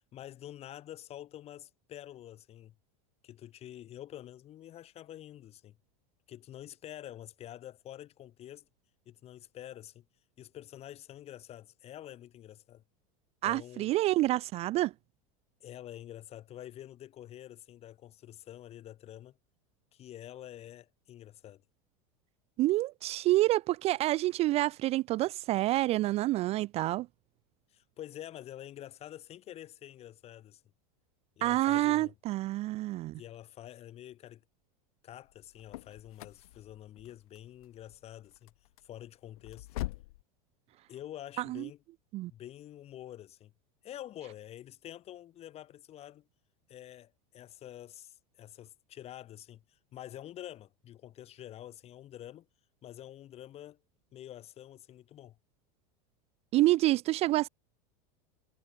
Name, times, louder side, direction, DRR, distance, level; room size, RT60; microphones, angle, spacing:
voice 1, 0.0-2.7 3.2-5.8 6.3-8.7 9.1-10.0 10.4-12.8 13.4-13.9 15.6-19.4 19.9-21.6 27.7-30.6 31.4-32.1 33.2-34.4 35.0-38.5 38.8-39.7 40.9-41.8 42.3-43.5 43.8-46.2 46.7-52.5 52.8-53.8 54.1-55.4, left 12 dB, 35° left, 2.1 m, -47 dB
voice 2, 13.4-14.9 22.6-27.1 31.4-33.2 41.4-41.7 42.1-42.3 56.5-57.5, right 17 dB, 35° right, 0.4 m, -28 dB
sound 1, 35.2-40.2, left 18 dB, 80° left, 1.4 m, -44 dB
supercardioid pair, 140°, 19 cm